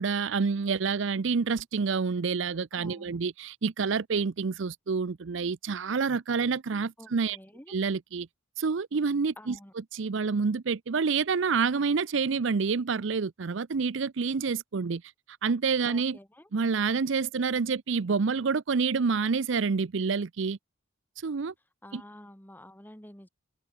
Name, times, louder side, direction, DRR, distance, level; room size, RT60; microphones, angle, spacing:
voice 1, 0.0-7.4 7.7-8.3 8.6-9.5 9.9-15.0 15.4-16.2 16.5-20.6 21.2-21.5 21.9-22.0, right 5 dB, 65° right, 0.5 m, -28 dB
voice 2, 2.7-3.2 7.0-7.7 9.4-9.7 15.9-16.5 21.8-23.3, left 1 dB, 10° left, 2.4 m, -49 dB
open air
head